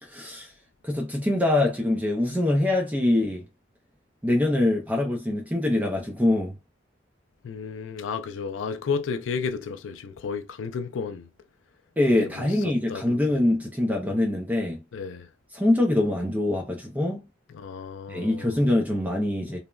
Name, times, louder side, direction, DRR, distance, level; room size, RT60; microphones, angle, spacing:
voice 1, 0.0-0.5 0.8-3.4 4.2-6.5 12.0-14.8 15.5-17.3 18.1-19.6, left 1 dB, 10° right, 0.4 m, -24 dB
voice 2, 7.4-11.3 12.1-13.4 14.9-15.3 17.5-18.6, left 5 dB, 75° left, 0.4 m, -33 dB
3.1 x 2.0 x 2.3 m
head